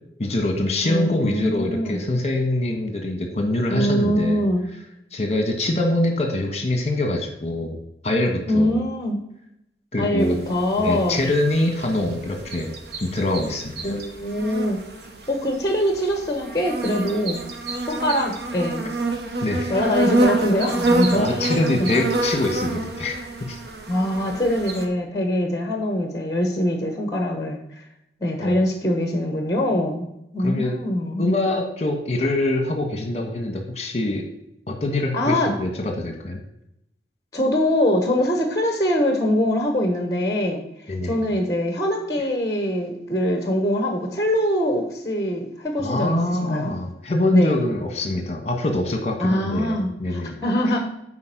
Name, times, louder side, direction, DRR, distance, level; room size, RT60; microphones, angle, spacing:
voice 1, 0.2-4.4 5.1-8.7 9.9-10.4 10.8-13.9 19.4-19.8 21.1-23.6 28.4-28.6 30.4-30.8 31.2-34.3 34.7-36.4 40.9-41.2 45.8-50.4 50.7-50.9, left 1 dB, 40° left, 4 dB, 1.3 m, -24 dB
voice 2, 0.8-2.1 3.7-4.6 8.5-9.2 10.0-11.2 13.8-14.8 15.3-17.4 17.9-18.9 19.7-21.4 21.8-21.9 23.9-27.9 28.2-31.3 35.1-35.5 37.3-46.8 47.3-47.6 49.2-50.9, left 1 dB, 20° left, 4 dB, 1.1 m, -23 dB
sound 1, 10.2-24.9, right 2 dB, 70° right, 1.1 m, -27 dB
9.7 x 4.3 x 6.0 m, 0.80 s
head